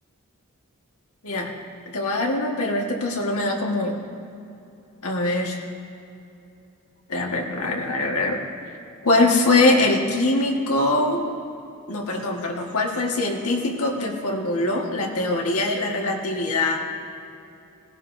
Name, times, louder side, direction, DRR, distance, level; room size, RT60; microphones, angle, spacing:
voice 1, 1.8-4.0 5.0-5.6 7.1-8.4 8.7-8.8 9.0-11.2 11.9-16.8, left 2 dB, 85° left, 0 dB, 1.6 m, -23 dB
18.0 x 15.5 x 2.7 m, 2.8 s
head